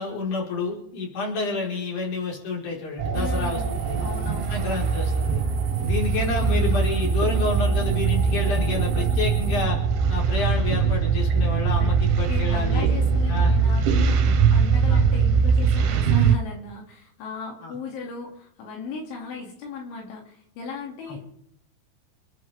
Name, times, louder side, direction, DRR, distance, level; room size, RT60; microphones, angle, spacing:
voice 1, 0.0-4.0 4.5-5.4 5.8-9.8 10.1-12.9 13.3-13.6 14.9-15.0 17.6-17.7 21.1-21.2, left 3 dB, 40° left, -2 dB, 5.9 m, -29 dB
sound 1, 3.0-16.4, right 5 dB, 80° right, 3.8 m, -21 dB
voice 2, 3.1-4.6 11.8-11.9 12.3-21.3, left 4 dB, 80° left, -1 dB, 5.1 m, -37 dB
sound 2, 3.1-9.6, right 5 dB, 50° right, 4.6 m, -45 dB
29.5 x 10.5 x 3.6 m, 0.74 s
omnidirectional pair, 5.4 m